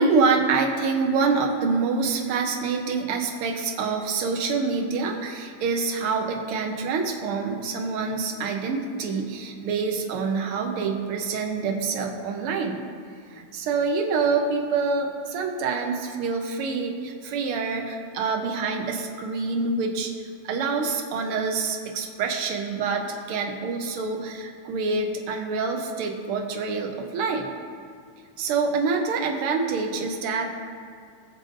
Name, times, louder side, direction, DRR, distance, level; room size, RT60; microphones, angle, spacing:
voice 1, 0.0-12.8 13.3-20.1 20.4-27.5 28.4-30.5, right 4 dB, 80° right, 2 dB, 1.3 m, -26 dB
20.0 x 6.8 x 2.6 m, 2.3 s
omnidirectional pair, 3.5 m